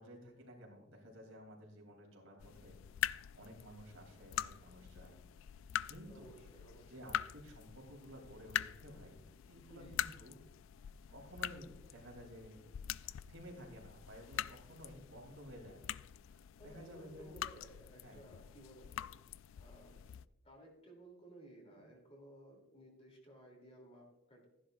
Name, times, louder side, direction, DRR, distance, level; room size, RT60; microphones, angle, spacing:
voice 1, 0.0-2.8 3.3-5.2 5.9-6.3 6.9-10.4 11.1-12.6 13.0-15.9 16.3-17.3 18.0-18.2, equal, 85° right, 0 dB, 3.4 m, -54 dB
sound 1, 2.4-20.3, left 11 dB, 70° left, 0.3 m, -44 dB
voice 2, 6.1-7.1 9.7-10.0 16.6-19.1 19.6-20.0 20.4-24.4, right 1 dB, 30° left, 0 dB, 3.1 m, -57 dB
15.0 x 10.5 x 2.6 m, 0.91 s
head